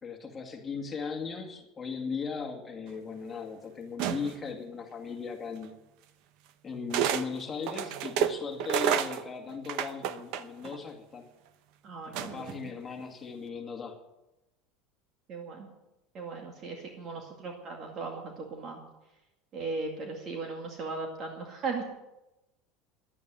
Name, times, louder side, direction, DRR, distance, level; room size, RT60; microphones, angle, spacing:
voice 1, 0.0-5.7 6.6-11.3 12.1-14.0, left 5 dB, 15° left, 2 dB, 2.3 m, -38 dB
sound 1, 4.0-4.5 5.6-5.7 6.9-7.3 7.6-10.8 12.1-12.6, right 9 dB, 60° right, 0.9 m, -30 dB
voice 2, 11.8-12.6 15.3-15.7 16.1-18.8 19.5-21.8, right 4 dB, 40° right, 2 dB, 2.2 m, -37 dB
11.5 x 9.3 x 9.5 m, 0.95 s
supercardioid pair, 145°, 0 cm